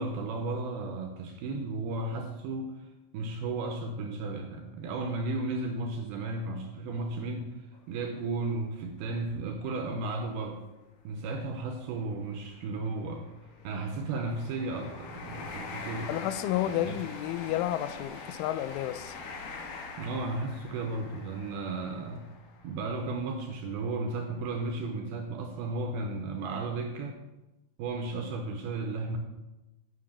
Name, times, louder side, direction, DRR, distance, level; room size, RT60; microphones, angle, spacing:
voice 1, 0.0-2.7 3.1-7.6 7.9-10.6 11.0-13.3 13.6-16.1 16.6-17.0 20.0-22.3 22.6-27.2 27.8-29.2, right 3 dB, 80° right, 4 dB, 2.3 m, -34 dB
sound 1, 7.7-7.9 8.5-8.6 9.7-9.9 10.1-10.3 11.0-23.7 24.3-24.4, left 4 dB, 65° left, 2.1 m, -44 dB
voice 2, 16.1-19.2, left 13 dB, 90° left, 13 dB, 3.0 m, -31 dB
10.0 x 6.1 x 7.3 m, 1.0 s
omnidirectional pair, 5.4 m